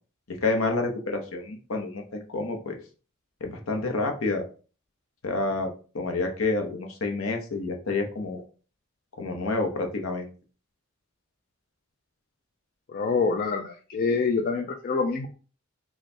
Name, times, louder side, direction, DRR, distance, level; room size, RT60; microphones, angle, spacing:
voice 1, 0.3-2.8 3.4-4.4 5.2-5.7 5.9-8.4 9.2-10.3, left 3 dB, 75° left, 4 dB, 0.8 m, -28 dB
voice 2, 12.9-15.3, left 4 dB, 45° left, 3 dB, 0.4 m, -26 dB
3.2 x 2.3 x 4.1 m, 0.37 s
head